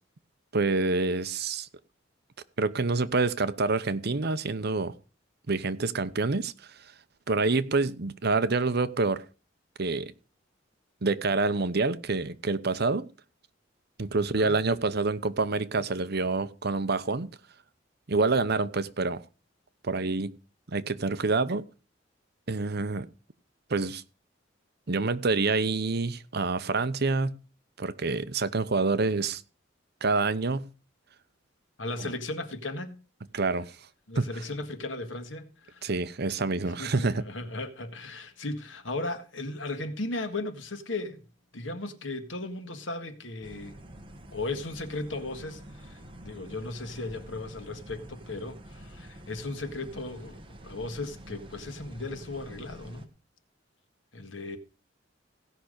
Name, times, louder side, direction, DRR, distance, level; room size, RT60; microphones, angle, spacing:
voice 1, 0.5-1.7 2.6-4.9 5.5-6.5 7.3-9.2 9.8-10.1 11.0-13.1 14.0-17.3 18.1-19.2 19.8-20.3 20.7-21.7 22.5-23.1 23.7-24.0 24.9-27.4 27.8-29.4 30.0-30.7 32.0-32.1 33.3-33.8 34.2-34.3 35.8-37.2, right 3 dB, 60° right, 0.9 m, -27 dB
voice 2, 31.8-33.0 34.1-35.9 36.8-41.2 41.5-43.8 44.3-53.1 54.1-54.6, left 2 dB, 85° left, 1.7 m, -36 dB
sound 1, 43.4-53.1, right 1 dB, 30° right, 1.6 m, -47 dB
16.5 x 5.8 x 6.5 m
head